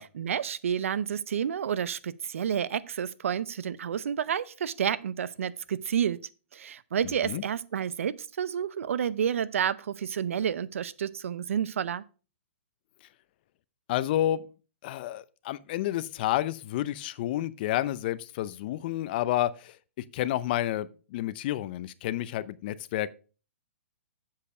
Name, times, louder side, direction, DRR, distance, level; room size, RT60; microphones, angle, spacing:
voice 1, 0.0-12.0, right 8 dB, 75° right, 0.6 m, -30 dB
voice 2, 7.0-7.4 13.9-14.4 14.8-19.8 20.1-23.1, left 13 dB, 45° left, 0.6 m, -30 dB
7.7 x 6.5 x 4.8 m
hypercardioid pair, 145°, 7 cm